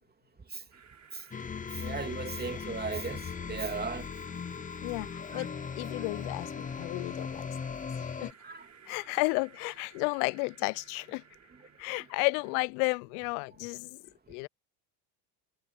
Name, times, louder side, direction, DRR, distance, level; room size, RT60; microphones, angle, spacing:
sound 1, 0.7-12.6, right 7 dB, 35° right, 6.4 m, -57 dB
sound 2, 1.3-8.3, left 6 dB, 15° left, 0.7 m, -38 dB
voice 1, 1.7-4.1 5.3-5.4 8.4-8.7 11.9-12.0, right 5 dB, 20° right, 2.8 m, -37 dB
voice 2, 4.8-5.5 5.8-7.5 8.0-8.3 8.9-11.2 11.8-14.0 14.3-14.5, left 31 dB, 70° left, 0.6 m, -32 dB
hypercardioid pair, 85°, 48 cm